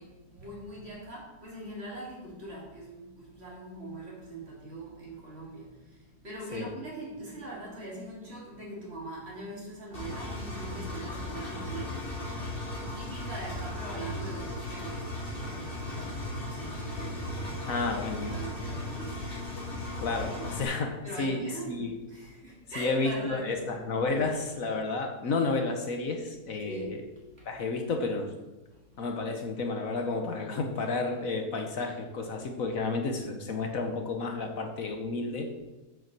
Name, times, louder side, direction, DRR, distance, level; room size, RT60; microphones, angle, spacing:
voice 1, 0.0-12.2 12.6-17.7 17.9-19.8 20.2-20.7 21.0-23.6 26.6-27.0 27.3-27.6 28.7-29.0, right 2 dB, 40° right, -5 dB, 3.3 m, -42 dB
Engine, 9.9-20.6, left 1 dB, 35° left, 2.9 m, -37 dB
voice 2, 17.7-18.4 20.0-20.9 21.2-22.0 22.8-27.0 27.4-28.3 29.0-35.5, left 3 dB, 60° left, 4 dB, 1.3 m, -31 dB
7.6 x 5.8 x 7.4 m, 1.1 s
omnidirectional pair, 1.7 m